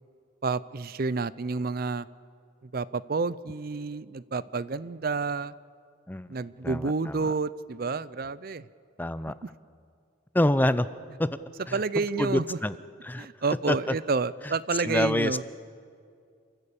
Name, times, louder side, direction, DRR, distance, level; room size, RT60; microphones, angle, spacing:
voice 1, 0.4-2.1 2.7-5.5 6.3-8.6 11.7-12.6 13.2-15.4, right 4 dB, 50° right, 18 dB, 0.5 m, -29 dB
voice 2, 6.6-7.3 9.0-9.3 10.3-10.9 11.2-11.3 11.7-11.8 12.2-12.8 13.0-13.3 13.7-13.9 14.4-14.5 14.8-15.4, left 1 dB, 10° left, 14 dB, 0.5 m, -26 dB
27.5 x 14.0 x 8.4 m, 2.3 s
head